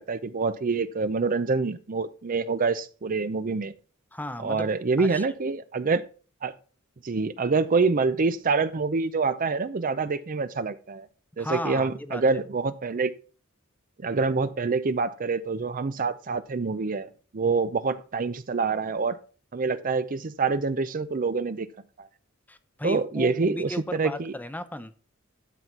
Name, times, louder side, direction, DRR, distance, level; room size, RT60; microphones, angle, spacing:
voice 1, 0.0-3.7 4.4-6.0 6.4-6.5 7.0-11.1 11.4-13.1 14.0-19.2 19.5-21.7 22.0-22.1 22.8-24.3, right 4 dB, 40° right, 0.5 m, -26 dB
voice 2, 4.1-4.7 5.0-5.4 11.4-12.2 22.5-25.0, left 1 dB, 10° left, 0.7 m, -35 dB
12.5 x 4.1 x 5.9 m
head